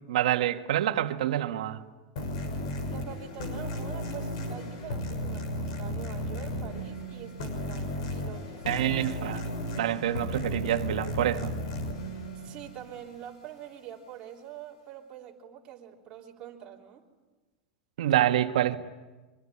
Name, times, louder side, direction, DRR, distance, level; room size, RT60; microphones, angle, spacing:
voice 1, 0.1-1.8 8.7-9.4 9.8-11.5 18.0-18.8, right 12 dB, 90° right, 1.7 m, -27 dB
sound 1, 2.2-13.3, left 1 dB, 60° left, 5.9 m, -35 dB
voice 2, 2.9-8.8 12.3-17.0, right 10 dB, 25° right, 3.4 m, -45 dB
24.5 x 24.0 x 10.0 m
supercardioid pair, 170°, 4 cm